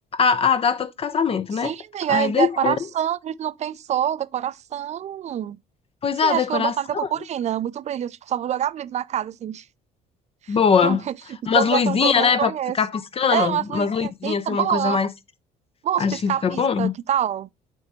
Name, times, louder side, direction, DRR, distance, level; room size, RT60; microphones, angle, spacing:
voice 1, 0.1-1.7 2.1-2.8 6.0-6.7 7.0-7.1 10.5-11.0 11.5-12.5 12.8-15.1 16.0-16.9, left 6 dB, 35° left, 0.5 m, -21 dB
voice 2, 1.6-5.6 6.2-9.6 10.4-10.6 10.8-11.1 11.5-12.8 13.3-15.0 15.8-17.5, right 10 dB, 40° right, 0.4 m, -26 dB
9.0 x 3.5 x 4.2 m
cardioid pair, 110°, 17 cm